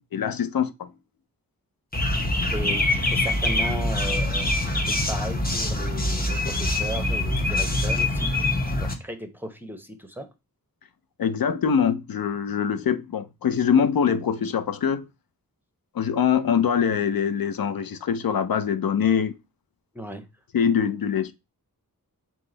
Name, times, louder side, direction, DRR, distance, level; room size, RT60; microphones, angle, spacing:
voice 1, 0.1-0.9 11.2-15.1 15.9-19.4 20.5-21.3, left 7 dB, 75° left, 0.5 m, -23 dB
sound 1, 1.9-8.9, left 1 dB, 25° left, 0.8 m, -24 dB
voice 2, 2.5-10.3 19.9-20.2, right 1 dB, 5° right, 0.8 m, -36 dB
3.7 x 3.0 x 3.8 m
wide cardioid pair, 80°, 35 cm